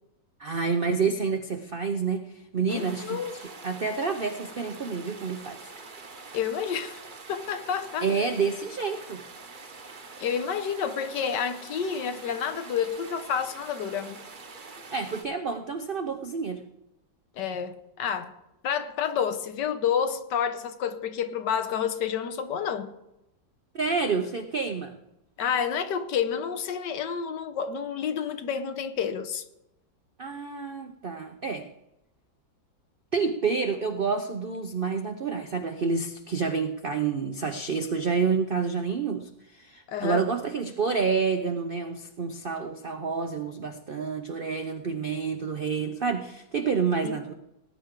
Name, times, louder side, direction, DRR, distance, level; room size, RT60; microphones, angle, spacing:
voice 1, 0.4-5.6 8.0-9.2 14.9-16.6 23.7-24.9 30.2-31.7 33.1-47.3, right 5 dB, 70° right, 0.5 m, -29 dB
voice 2, 2.7-3.3 6.3-7.0 7.3-8.1 10.2-14.2 17.4-18.3 18.6-22.9 25.4-29.4 39.9-40.2 47.0-47.2, left 7 dB, 70° left, 1.4 m, -29 dB
sound 1, 2.7-15.2, right 4 dB, 35° right, 0.9 m, -45 dB
19.0 x 10.0 x 3.7 m
omnidirectional pair, 2.0 m